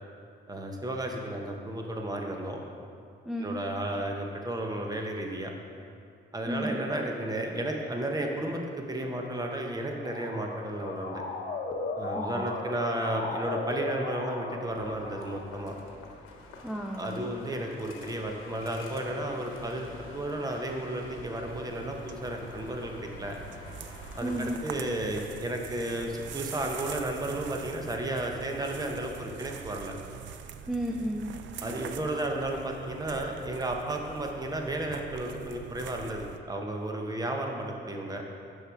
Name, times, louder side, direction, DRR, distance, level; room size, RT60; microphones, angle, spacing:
voice 1, 0.5-2.6 3.4-5.5 6.3-11.2 12.0-15.7 17.0-23.4 24.1-29.9 31.6-38.2, right 1 dB, 20° right, 2 dB, 0.9 m, -33 dB
voice 2, 3.2-3.6 6.5-6.8 12.1-12.5 16.6-17.3 24.2-24.6 30.7-31.3, right 1 dB, ahead, 1 dB, 0.4 m, -33 dB
Motor vehicle (road) / Siren, 9.8-15.6, left 3 dB, 45° left, 0.9 m, -36 dB
sound 1, 14.7-24.6, left 3 dB, 90° left, 0.9 m, -48 dB
sound 2, 21.4-36.4, right 8 dB, 70° right, 0.5 m, -44 dB
6.6 x 5.6 x 4.8 m, 2.4 s
cardioid pair, 90°, 20 cm